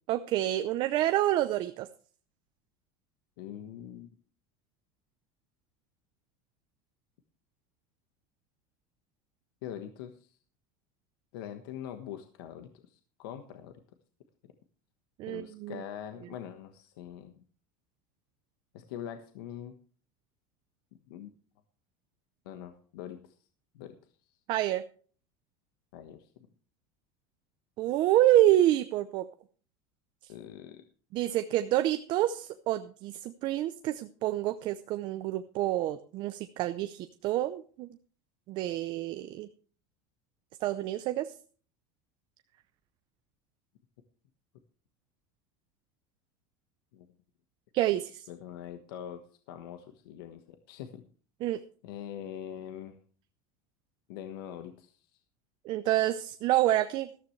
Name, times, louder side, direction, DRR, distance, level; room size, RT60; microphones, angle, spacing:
voice 1, 0.1-1.9 15.2-15.8 24.5-24.8 27.8-29.3 30.2-30.3 31.1-37.9 38.5-39.5 40.6-41.3 47.7-48.3 51.4-51.6 55.6-57.1, right 13 dB, 45° right, 10 dB, 0.7 m, -28 dB
voice 2, 3.4-4.1 9.6-10.3 11.3-13.8 14.4-14.5 15.3-17.4 18.7-19.7 21.1-21.3 22.4-23.3 23.7-24.0 25.9-26.5 30.3-30.8 46.9-47.0 47.9-48.0 48.3-49.2 49.5-51.0 51.8-53.0 54.1-55.1, left 10 dB, 80° left, 7 dB, 1.3 m, -43 dB
13.5 x 13.0 x 3.2 m, 0.43 s
supercardioid pair, 155°, 12 cm